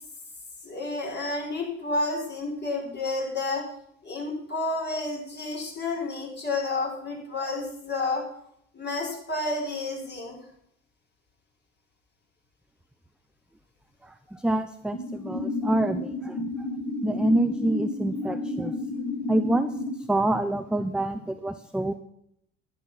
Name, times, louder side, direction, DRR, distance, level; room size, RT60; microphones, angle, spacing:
voice 1, 0.6-3.6 4.0-8.2 8.7-10.4, left 2 dB, 30° left, -1 dB, 5.5 m, -30 dB
voice 2, 14.0-16.5 17.0-18.8 19.3-19.7 20.1-21.9, right 1 dB, ahead, 10 dB, 0.6 m, -26 dB
sound 1, 14.9-19.9, left 2 dB, 45° left, 3.5 m, -31 dB
11.0 x 10.0 x 6.0 m, 0.72 s
hypercardioid pair, 65°, 37 cm